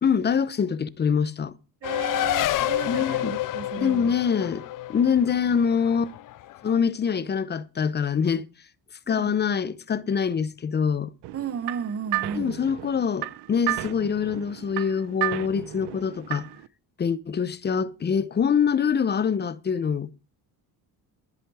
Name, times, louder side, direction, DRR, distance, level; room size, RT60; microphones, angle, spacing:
voice 1, 0.0-1.5 2.9-3.3 3.8-6.2 6.6-8.5 9.1-11.1 12.3-16.5 17.0-20.1, left 7 dB, 25° left, 0.8 m, -25 dB
Race car auto racing, 1.8-6.8, left 14 dB, 50° left, 0.6 m, -29 dB
voice 2, 1.8-4.2 9.1-9.3 11.3-12.5, right 7 dB, 35° right, 1.0 m, -34 dB
sound 1, 11.2-16.7, right 17 dB, 85° right, 1.0 m, -33 dB
13.5 x 11.0 x 4.8 m
cardioid pair, 150°, 40 cm